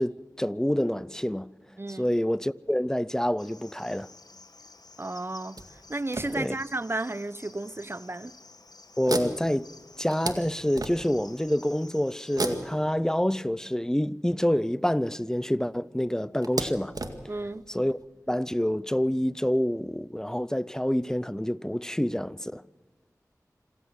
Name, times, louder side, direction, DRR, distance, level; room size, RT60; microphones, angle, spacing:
voice 1, 0.0-1.5 1.9-4.1 6.3-6.5 9.0-9.7 10.0-16.9 17.7-18.0 18.3-22.6, equal, 10° left, 0.7 m, -27 dB
voice 2, 1.8-2.1 5.0-5.6 5.9-8.3 17.3-17.6, right 2 dB, 40° right, 0.9 m, -33 dB
Cricket, 3.4-12.8, left 3 dB, 85° left, 1.7 m, -52 dB
sound 1, 5.6-6.9 7.6-7.7 8.1-8.3 9.0-11.4 12.3-14.0 15.1-15.2 15.5-15.6 16.4-18.1, right 2 dB, 75° right, 2.1 m, -35 dB
27.0 x 15.5 x 6.5 m
wide cardioid pair, 45°, 7 cm